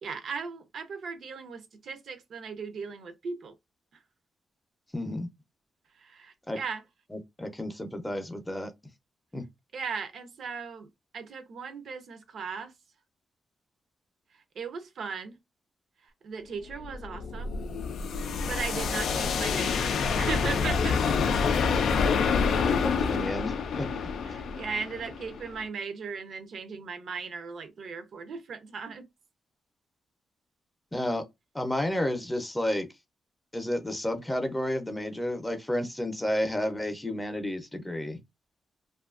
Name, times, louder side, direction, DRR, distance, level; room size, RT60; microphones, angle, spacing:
voice 1, 0.0-3.5 5.9-6.8 9.7-10.9 11.1-12.7 14.3-15.4 16.0-17.6 18.4-21.2 24.2-29.1, right 5 dB, 65° right, 0.5 m, -37 dB
voice 2, 4.9-5.3 6.5-6.6 7.1-8.7 9.3-9.4 22.5-23.9 30.9-31.2 31.5-32.9 33.5-38.2, left 1 dB, 10° left, 0.5 m, -31 dB
sound 1, 16.7-25.6, left 5 dB, 75° left, 0.3 m, -27 dB
2.6 x 2.3 x 2.4 m
cardioid pair, 115°, 0 cm